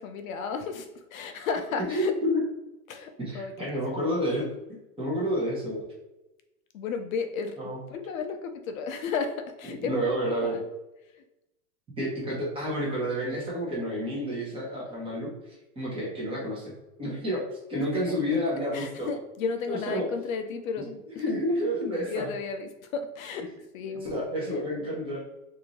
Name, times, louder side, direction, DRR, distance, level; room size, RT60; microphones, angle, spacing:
voice 1, 0.0-2.1 2.9-3.8 6.7-10.6 11.2-11.3 18.5-20.9 21.8-23.5 23.7-24.8, left 5 dB, 65° left, 7 dB, 0.5 m, -34 dB
voice 2, 1.9-2.4 3.2-4.5 5.0-5.9 7.6-7.8 9.8-10.5 12.0-15.3 15.7-17.4 17.7-19.1 19.7-20.1 21.2-22.3 24.0-25.2, equal, 10° right, -5 dB, 0.9 m, -29 dB
2.6 x 2.6 x 3.0 m, 0.95 s
hypercardioid pair, 140°, 46 cm